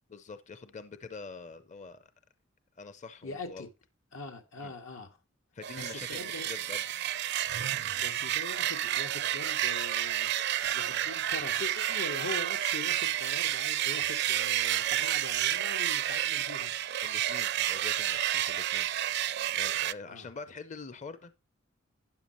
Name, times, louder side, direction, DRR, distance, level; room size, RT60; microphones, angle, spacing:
voice 1, 0.1-2.1 2.8-3.7 4.6-4.7 5.5-6.8 17.0-19.2 19.5-21.4, left 4 dB, 35° left, 0.6 m, -45 dB
voice 2, 3.2-3.7 4.1-5.1 5.8-6.5 8.0-10.3 10.6-16.7 20.1-20.3, left 2 dB, 90° left, 1.9 m, -42 dB
sound 1, 5.6-19.9, right 12 dB, 60° right, 0.4 m, -30 dB
12.5 x 9.2 x 3.0 m
head